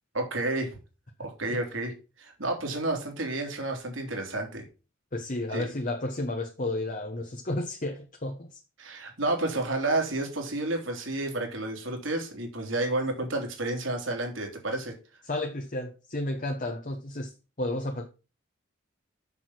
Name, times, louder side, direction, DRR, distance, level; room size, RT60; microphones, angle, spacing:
voice 1, 0.1-0.8 1.2-4.6 5.5-5.7 8.8-14.9, right 2 dB, 70° right, 3.1 m, -30 dB
voice 2, 5.1-8.6 15.2-17.3 17.6-18.1, left 2 dB, 40° left, 1.2 m, -32 dB
7.2 x 6.5 x 6.0 m
head